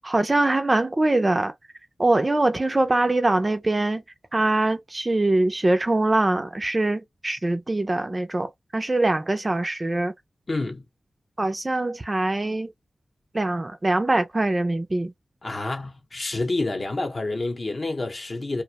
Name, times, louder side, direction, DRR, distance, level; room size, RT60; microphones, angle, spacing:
voice 1, 0.0-1.5 2.0-4.0 4.3-10.1 11.4-12.7 13.3-15.1, right 2 dB, 25° right, 0.4 m, -23 dB
voice 2, 10.5-10.8 15.4-18.6, left 2 dB, 45° left, 0.7 m, -28 dB
2.5 x 2.0 x 2.8 m
wide cardioid pair, 120°, 0 cm